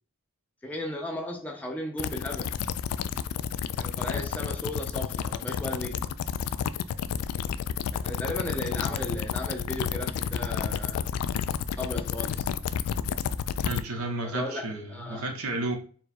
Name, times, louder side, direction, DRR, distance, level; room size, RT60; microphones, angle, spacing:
voice 1, 0.6-2.6 3.7-6.2 8.0-11.1 11.8-12.5 14.2-15.3, left 1 dB, 5° left, 0.6 m, -36 dB
sound 1, 2.0-13.8, left 8 dB, 85° left, 0.3 m, -30 dB
Bass guitar, 8.9-12.9, left 1 dB, 25° right, 1.0 m, -50 dB
voice 2, 13.6-15.8, right 2 dB, 75° right, 1.0 m, -32 dB
4.6 x 2.2 x 4.1 m
head